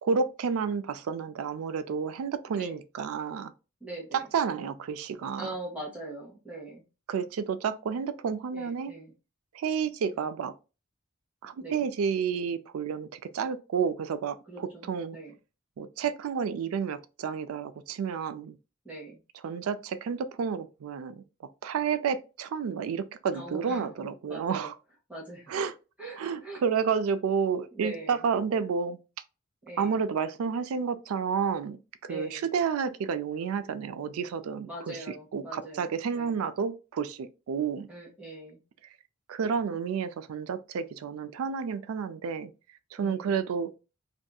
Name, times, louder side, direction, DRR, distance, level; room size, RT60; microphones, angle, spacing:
voice 1, 0.0-3.5 4.1-5.5 7.1-8.9 9.5-10.5 11.4-15.2 15.8-18.6 19.4-21.2 21.6-24.8 25.5-25.7 26.2-29.0 29.8-31.8 32.0-37.9 39.3-42.5 42.9-43.7, right 6 dB, 85° right, 0.3 m, -30 dB
voice 2, 3.8-4.3 5.3-6.8 8.5-9.1 10.0-10.1 11.6-11.8 14.5-15.3 18.8-19.2 23.3-23.9 24.3-24.7 25.1-25.5 26.0-26.6 27.7-28.2 29.7-30.0 32.1-32.5 34.7-36.3 37.9-38.6 43.0-43.7, right 2 dB, 5° right, 0.9 m, -42 dB
2.6 x 2.5 x 2.2 m
head